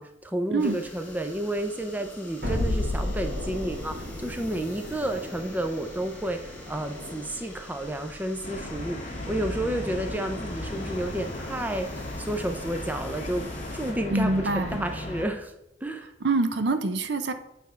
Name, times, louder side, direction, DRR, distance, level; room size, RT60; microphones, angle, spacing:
voice 1, 0.0-15.5 15.8-16.1, right 1 dB, 10° right, 6 dB, 0.4 m, -31 dB
sound 1, 0.6-13.9, left 1 dB, 5° left, 1.6 m, -45 dB
sound 2, 2.4-7.5, left 1 dB, 50° right, 1.5 m, -33 dB
sound 3, 8.4-15.3, left 1 dB, 35° left, 1.1 m, -36 dB
voice 2, 14.1-14.8 16.2-17.3, right 3 dB, 65° right, 9 dB, 0.6 m, -25 dB
8.6 x 3.4 x 5.5 m, 0.88 s
head